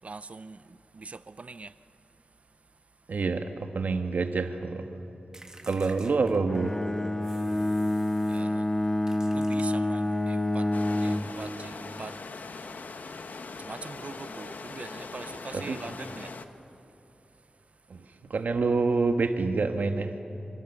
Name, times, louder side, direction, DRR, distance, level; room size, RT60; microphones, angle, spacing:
voice 1, 0.0-1.8 5.6-6.0 7.7-7.8 8.1-12.4 13.1-13.2 13.5-16.5, right 3 dB, 50° right, 0.7 m, -43 dB
voice 2, 3.1-4.9 5.6-6.8 15.5-15.8 17.9-20.1, right 4 dB, 85° right, 1.6 m, -27 dB
sound 1, 5.3-6.8 7.2-8.5 9.1-10.2, right 1 dB, 25° right, 1.9 m, -51 dB
Bowed string instrument, 6.5-11.4, left 1 dB, 20° left, 0.9 m, -27 dB
sound 2, 10.7-16.5, left 4 dB, 80° left, 1.2 m, -41 dB
27.5 x 25.5 x 6.9 m
wide cardioid pair, 90°, 3 cm